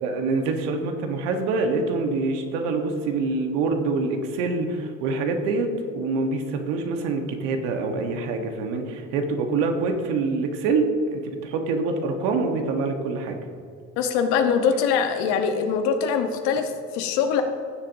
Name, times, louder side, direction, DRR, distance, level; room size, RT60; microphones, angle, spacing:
voice 1, 0.0-5.7 5.9-13.4, right 3 dB, 75° right, 4 dB, 1.4 m, -25 dB
voice 2, 14.0-17.4, left 6 dB, 70° left, 6 dB, 1.2 m, -23 dB
15.0 x 7.6 x 2.7 m, 2.4 s
hypercardioid pair, 70°, 41 cm